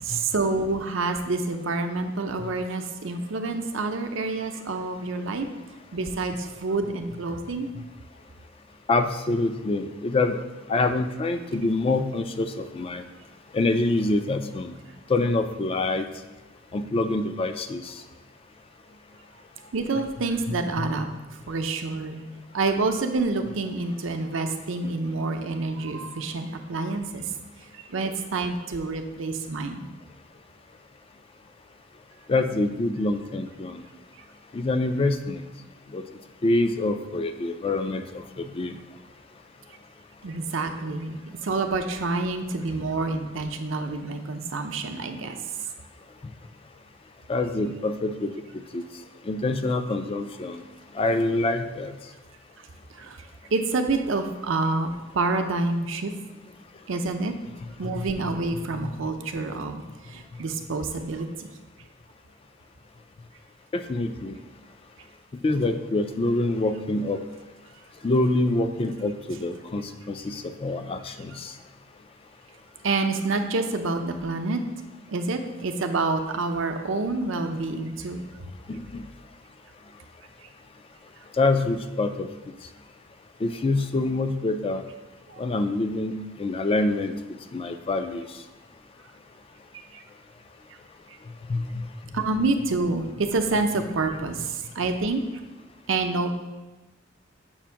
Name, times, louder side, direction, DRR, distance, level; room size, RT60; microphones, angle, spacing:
voice 1, 0.0-5.5 5.9-7.7 19.6-21.1 21.5-22.2 22.5-27.2 27.7-29.9 40.2-45.4 53.0-53.2 53.5-56.1 56.9-57.3 57.8-59.8 60.1-61.5 72.8-74.6 75.1-78.3 85.3-85.4 89.9-90.0 92.1-95.2 95.9-96.3, right 3 dB, 70° right, 6 dB, 0.6 m, -27 dB
voice 2, 8.9-10.4 10.7-13.0 13.5-14.7 15.1-16.1 16.7-17.9 32.3-33.8 34.5-35.4 35.9-36.0 36.4-38.8 42.7-42.8 47.3-48.3 48.7-48.8 49.3-50.6 50.9-51.9 58.0-58.1 63.7-64.4 65.4-67.2 68.0-71.5 78.7-79.0 81.4-82.3 83.4-84.8 85.4-86.1 86.4-87.1 87.5-88.3 91.5-91.6, left 2 dB, 30° left, 8 dB, 0.3 m, -25 dB
7.1 x 2.5 x 5.7 m, 1.1 s
head